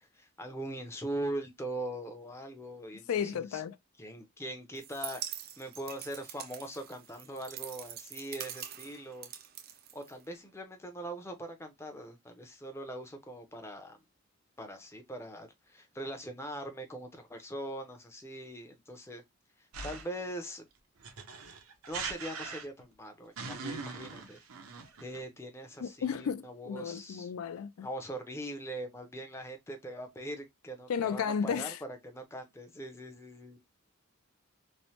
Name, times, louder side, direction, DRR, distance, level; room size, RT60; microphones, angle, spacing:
voice 1, 0.0-3.6 4.0-9.3 9.9-14.0 14.6-19.2 19.6-20.7 21.9-24.5 25.0-27.3 27.8-33.6, right 1 dB, 10° left, 0.5 m, -41 dB
voice 2, 3.1-3.8 25.8-27.9 30.9-31.8, left 7 dB, 80° left, 0.3 m, -33 dB
sound 1, 4.7-10.5, right 10 dB, 45° right, 0.3 m, -44 dB
sound 2, 19.7-20.2 21.0-22.9 23.4-25.2, right 5 dB, 85° right, 0.7 m, -41 dB
3.1 x 2.1 x 2.7 m
head